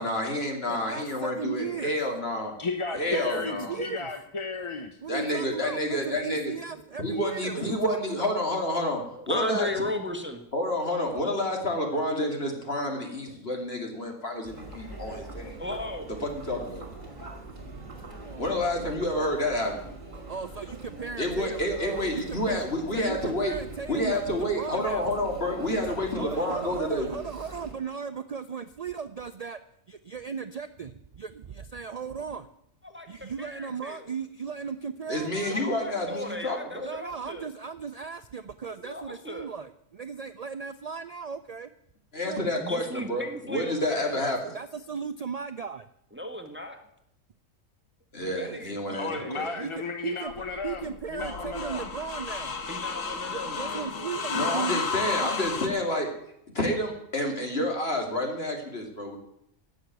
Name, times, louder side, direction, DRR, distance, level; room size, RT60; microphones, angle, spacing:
voice 1, 0.0-2.5 2.9-3.8 5.1-6.5 7.0-9.0 9.3-9.7 10.5-15.6 16.2-16.8 18.4-19.8 21.2-23.5 23.9-27.1 35.1-36.9 42.1-44.4 48.1-49.1 49.3-49.5 54.3-56.1 56.5-59.2, left 1 dB, 45° left, 2 dB, 2.9 m, -29 dB
voice 2, 0.7-1.9 3.1-4.1 5.0-8.3 18.1-19.3 20.3-22.6 22.9-25.1 26.2-29.6 29.9-32.5 33.1-35.6 36.8-41.7 42.2-42.5 44.0-45.9 48.3-48.6 49.4-49.7 50.0-50.3 50.6-52.5 53.3-54.9 55.2-55.3, right 6 dB, 60° right, 11 dB, 0.4 m, -37 dB
voice 3, 2.6-5.0 48.9-51.9, left 4 dB, 25° left, 6 dB, 0.8 m, -34 dB
voice 4, 9.1-10.4 12.5-12.6 13.2-13.3 15.6-16.1 22.2-22.4 32.8-34.1 35.1-37.5 38.7-39.5 42.6-44.2 46.1-46.8 48.3-49.5 52.7-53.8, left 1 dB, 10° right, 6 dB, 1.3 m, -36 dB
Chatter, 14.4-27.7, right 2 dB, 35° right, 2.6 m, -42 dB
sound 1, 50.3-55.7, left 5 dB, 70° left, 1.8 m, -32 dB
17.0 x 6.5 x 9.2 m, 0.78 s
omnidirectional pair, 1.4 m